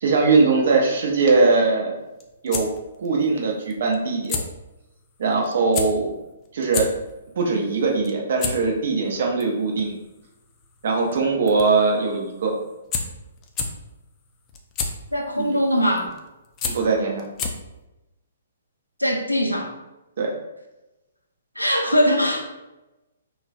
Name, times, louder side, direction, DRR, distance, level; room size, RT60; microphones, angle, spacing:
voice 1, 0.0-2.0 2.4-2.7 3.0-4.4 5.2-6.1 6.5-6.9 7.4-9.9 10.8-12.5 15.4-15.5 16.7-17.2 20.2-20.3, right 4 dB, 50° right, 0 dB, 0.6 m, -21 dB
sound 1, 2.0-17.8, left 5 dB, 25° left, 0.3 m, -34 dB
voice 2, 15.1-16.2 19.0-19.7 21.6-22.4, equal, 90° left, 1 dB, 0.5 m, -21 dB
3.1 x 2.1 x 2.4 m, 1.0 s
figure-of-eight pair, 125°, 0 cm